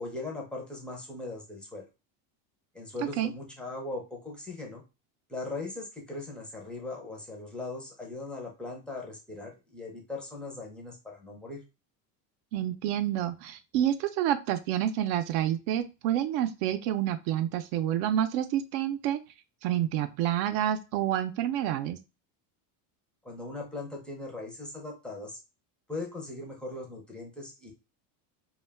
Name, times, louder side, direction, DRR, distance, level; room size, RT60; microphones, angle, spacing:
voice 1, 0.0-1.9 2.7-4.8 5.3-11.6 23.2-25.4 25.9-27.7, left 2 dB, ahead, -1 dB, 0.4 m, -39 dB
voice 2, 12.5-19.2 19.6-22.0, right 11 dB, 70° right, 9 dB, 0.6 m, -28 dB
2.3 x 2.2 x 3.3 m, 0.28 s
cardioid pair, 145°, 47 cm